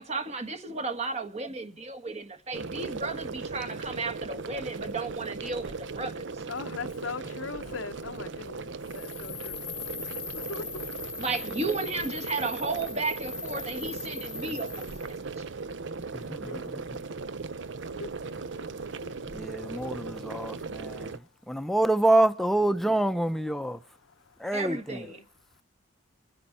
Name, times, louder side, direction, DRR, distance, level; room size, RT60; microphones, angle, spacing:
voice 1, 0.0-6.4 11.2-14.9 15.4-15.5 24.5-25.2, right 3 dB, 35° right, 1.5 m, -34 dB
sound 1, 2.5-21.2, right 4 dB, 65° right, 0.7 m, -38 dB
voice 2, 6.5-10.9 16.4-16.8 17.9-18.2 18.6-18.7 19.0-19.2 21.2-21.3 21.6-21.7 23.6-25.3, left 4 dB, 85° left, 0.8 m, -42 dB
sound 2, 8.8-15.2, left 6 dB, 25° left, 0.9 m, -40 dB
voice 3, 16.1-16.6 19.3-21.2 21.5-23.8 24.4-25.0, right 1 dB, ahead, 0.7 m, -26 dB
26.0 x 9.9 x 4.2 m
head